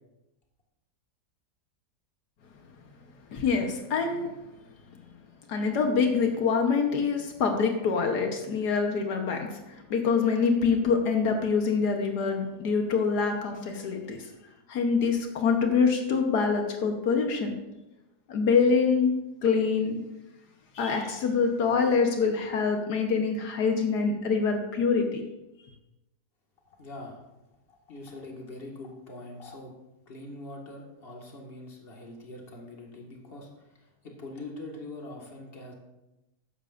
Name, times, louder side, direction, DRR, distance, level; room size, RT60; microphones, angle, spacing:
voice 1, 3.3-4.3 5.5-14.3 14.7-17.5 18.3-19.1 19.4-20.0 20.8-25.2, left 5 dB, 80° left, 3 dB, 1.6 m, -25 dB
voice 2, 26.7-27.2 27.7-29.7 30.1-35.7, left 2 dB, 35° left, -1 dB, 2.0 m, -43 dB
13.5 x 10.0 x 2.5 m, 0.96 s
omnidirectional pair, 1.7 m